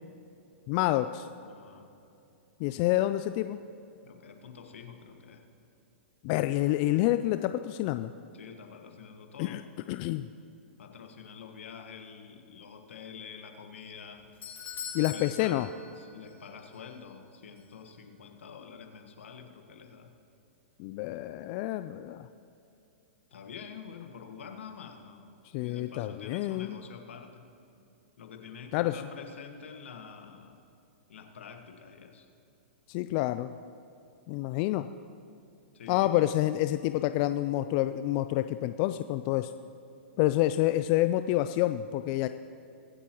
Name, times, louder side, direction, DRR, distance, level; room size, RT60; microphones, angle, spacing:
voice 1, 0.7-1.3 2.6-3.6 6.2-8.1 9.4-9.6 9.9-10.3 14.9-15.7 20.8-22.3 25.5-26.8 28.7-29.0 32.9-33.5 34.3-34.9 35.9-39.5 40.2-42.3, left 15 dB, 40° left, 10 dB, 0.3 m, -28 dB
voice 2, 1.4-1.9 4.0-5.4 8.3-9.6 10.8-14.3 15.1-15.6 16.0-20.1 23.3-27.4 28.2-30.6 31.1-32.3 35.7-36.3, left 6 dB, 75° left, 5 dB, 1.4 m, -47 dB
Doorbell, 13.9-16.5 16.7-16.8 17.6-17.7, left 7 dB, 25° left, 2.2 m, -42 dB
23.0 x 8.3 x 3.0 m, 2.7 s
hypercardioid pair, 125°, 7 cm